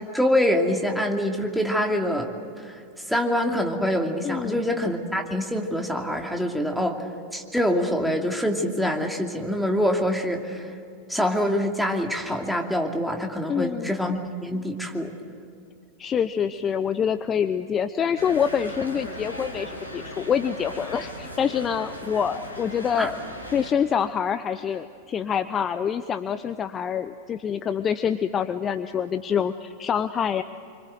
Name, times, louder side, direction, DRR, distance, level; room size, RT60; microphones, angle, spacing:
voice 1, 0.0-2.3 2.6-2.8 3.1-7.0 7.3-10.6 11.1-15.1 23.0-23.1, equal, ahead, 2 dB, 2.6 m, -25 dB
voice 2, 4.2-4.6 13.5-13.9 16.0-23.2 23.5-30.4, left 7 dB, 25° left, 11 dB, 0.8 m, -26 dB
sound 1, 18.1-23.7, equal, 90° right, 4.8 m, -38 dB
27.0 x 25.0 x 7.9 m, 2.4 s
figure-of-eight pair, 90°, 0 cm